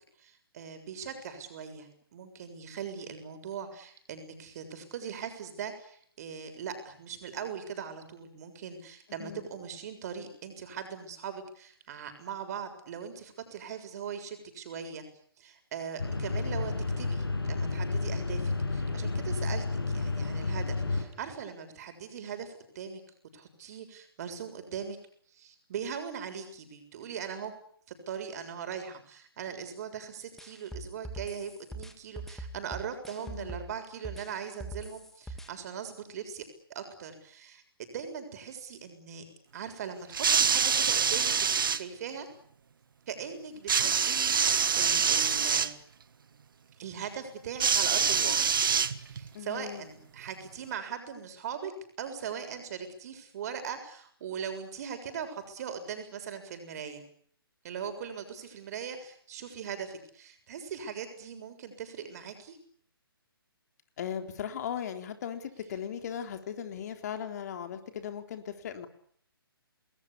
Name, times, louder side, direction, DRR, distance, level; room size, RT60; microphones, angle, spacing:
voice 1, 0.2-15.0 15.4-23.0 23.3-25.0 25.3-27.5 27.9-36.4 36.7-39.2 39.5-41.3 41.7-42.3 43.1-45.7 46.8-48.6 49.0-51.7 52.0-57.0 57.6-62.6, right 7 dB, 40° right, 8 dB, 7.0 m, -40 dB
sound 1, 16.0-21.0, left 3 dB, 75° left, 7.6 m, -31 dB
sound 2, 30.4-33.7 34.0-35.5, right 1 dB, 5° left, 2.5 m, -42 dB
voice 2, 33.2-33.6 49.3-49.8 64.0-68.9, left 8 dB, 45° left, 7 dB, 3.7 m, -38 dB
sound 3, 40.1-41.8 43.7-45.7 47.6-49.3 50.3-50.4, right 6 dB, 60° right, 1.8 m, -25 dB
29.5 x 20.5 x 8.6 m, 0.62 s
figure-of-eight pair, 135°, 13 cm